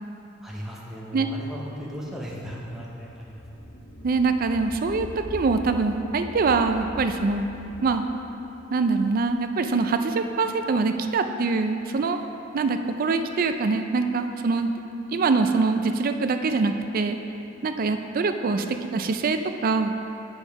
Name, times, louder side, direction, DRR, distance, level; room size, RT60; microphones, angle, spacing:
voice 1, 0.4-3.7, equal, ahead, -5 dB, 0.7 m, -36 dB
sound 1, 1.6-10.2, left 1 dB, 80° left, 0.9 m, -42 dB
voice 2, 4.0-7.5 7.8-8.0 8.7-12.2 12.5-14.7 15.1-17.2 17.6-19.9, right 4 dB, 45° right, 7 dB, 0.4 m, -24 dB
7.0 x 5.4 x 4.6 m, 2.8 s
head